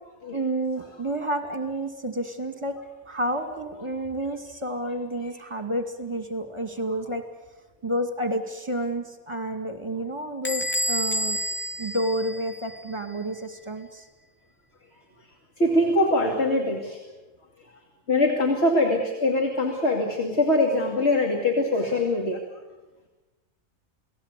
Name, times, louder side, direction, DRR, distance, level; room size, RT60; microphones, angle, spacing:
voice 1, 0.3-2.8 3.1-7.2 7.8-11.4 11.8-14.1, right 1 dB, 20° right, 6 dB, 2.2 m, -30 dB
Bell / Door, 10.4-12.9, equal, 20° left, 0.3 m, -29 dB
voice 2, 15.6-17.0 18.1-22.4, left 1 dB, 45° left, 2 dB, 2.8 m, -23 dB
29.0 x 18.5 x 8.3 m, 1.1 s
omnidirectional pair, 1.5 m